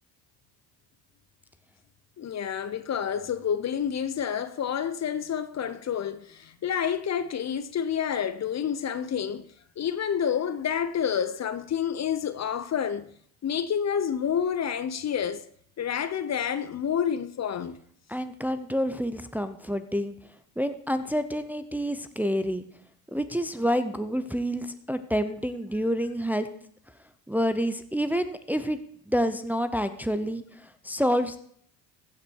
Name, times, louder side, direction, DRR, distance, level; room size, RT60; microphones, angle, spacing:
voice 1, 2.2-9.5 9.8-13.1 13.4-15.4 15.8-17.8, left 8 dB, 35° left, 0.7 m, -29 dB
voice 2, 18.1-20.1 20.6-22.6 23.1-26.5 27.3-28.8 29.1-31.4, equal, 5° right, 0.7 m, -28 dB
15.5 x 5.9 x 4.6 m
hypercardioid pair, 70°, 44 cm